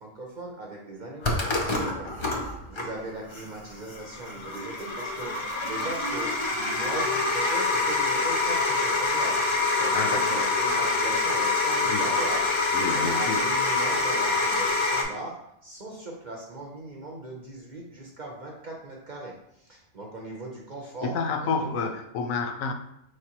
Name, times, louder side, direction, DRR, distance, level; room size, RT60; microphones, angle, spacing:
voice 1, 0.0-5.3 5.6-12.4 12.9-21.1 21.4-21.9, right 2 dB, 50° right, -1 dB, 0.6 m, -39 dB
sound 1, 1.2-15.0, left 3 dB, 45° left, 0.3 m, -26 dB
voice 2, 9.9-10.5 11.8-12.1 12.7-13.5 21.0-22.7, left 4 dB, 85° left, 5 dB, 1.0 m, -29 dB
4.8 x 3.3 x 2.9 m, 0.79 s
omnidirectional pair, 1.4 m